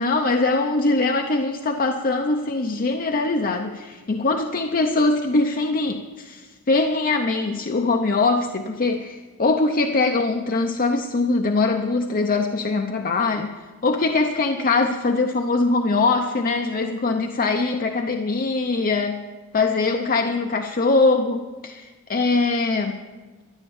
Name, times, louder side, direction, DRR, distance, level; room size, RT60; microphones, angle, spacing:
voice 1, 0.0-13.5 13.8-19.2 19.5-23.0, left 3 dB, 40° left, 4 dB, 0.7 m, -22 dB
13.5 x 11.5 x 7.2 m, 1.3 s
head